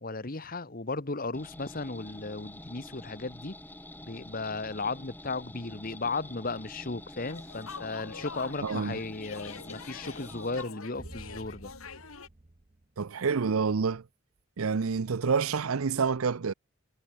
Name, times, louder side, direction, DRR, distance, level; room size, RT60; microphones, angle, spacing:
voice 1, 0.0-3.6 4.0-11.7, left 3 dB, 45° left, 1.3 m, -35 dB
sound 1, 1.3-10.6, left 1 dB, 10° left, 3.5 m, -47 dB
sound 2, 7.3-12.3, left 5 dB, 90° left, 2.4 m, -45 dB
voice 2, 8.6-9.0 13.0-14.0 14.6-16.5, right 5 dB, 90° right, 0.6 m, -28 dB
sound 3, 11.0-13.6, right 1 dB, 30° right, 0.9 m, -50 dB
head